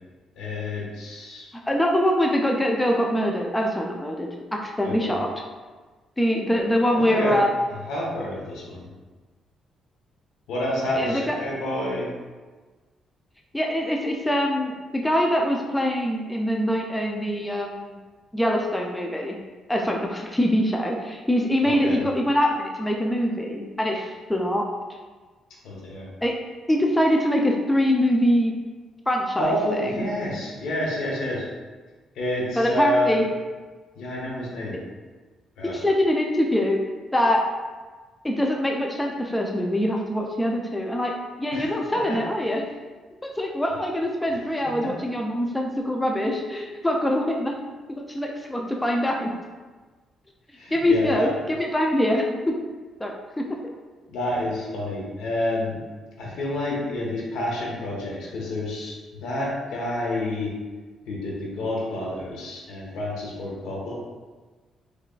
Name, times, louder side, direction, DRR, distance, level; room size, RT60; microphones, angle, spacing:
voice 1, 0.4-1.5 4.8-5.2 6.9-7.4 7.9-8.9 10.5-12.2 21.6-22.0 25.6-26.0 29.4-31.5 32.1-33.2 34.0-34.8 35.6-35.7 41.5-42.2 44.8-45.1 50.6-51.3 54.1-55.8 56.2-58.9 59.2-60.5 61.1-63.9, left 1 dB, 80° left, -3 dB, 1.0 m, -29 dB
voice 2, 1.7-5.3 6.2-7.5 11.0-11.4 13.5-18.0 18.3-19.4 19.7-24.7 26.2-26.3 26.7-28.5 29.1-29.9 32.6-33.2 35.6-36.8 37.1-37.4 38.2-42.6 43.2-47.5 48.1-49.3 50.7-52.5 53.0-53.4, equal, 10° left, 0 dB, 0.4 m, -24 dB
3.7 x 3.3 x 2.3 m, 1.3 s
cardioid pair, 90°, 0 cm